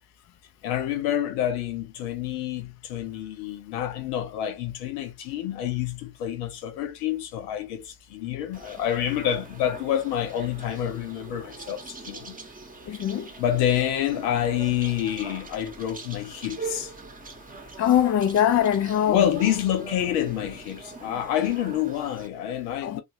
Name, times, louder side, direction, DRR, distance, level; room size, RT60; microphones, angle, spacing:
voice 1, 0.6-12.4 13.4-16.9 19.1-23.0, left 11 dB, 70° left, 0.8 m, -28 dB
sound 1, 8.5-22.3, right 4 dB, 15° right, 0.9 m, -42 dB
voice 2, 12.9-13.3 17.8-19.3 22.8-23.0, left 10 dB, 35° left, 0.5 m, -22 dB
3.0 x 2.4 x 2.7 m
figure-of-eight pair, 40°, 48 cm